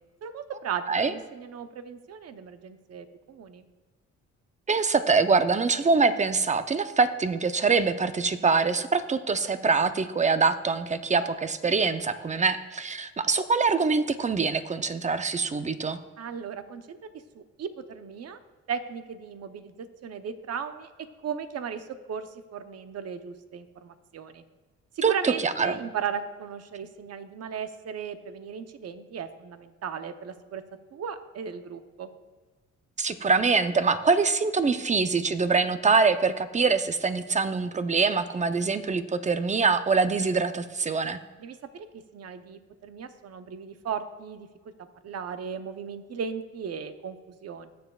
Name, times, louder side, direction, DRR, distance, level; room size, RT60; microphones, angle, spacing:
voice 1, 0.2-3.7 16.2-17.0 17.3-18.4 18.7-20.9 21.2-24.4 25.0-30.6 30.9-32.1 41.4-44.5 45.0-47.7, right 7 dB, 55° right, 10 dB, 0.8 m, -36 dB
voice 2, 4.7-16.0 25.0-25.8 33.0-41.2, right 4 dB, 25° right, 11 dB, 0.6 m, -24 dB
20.5 x 7.0 x 2.4 m, 1.3 s
cardioid pair, 90°, 30 cm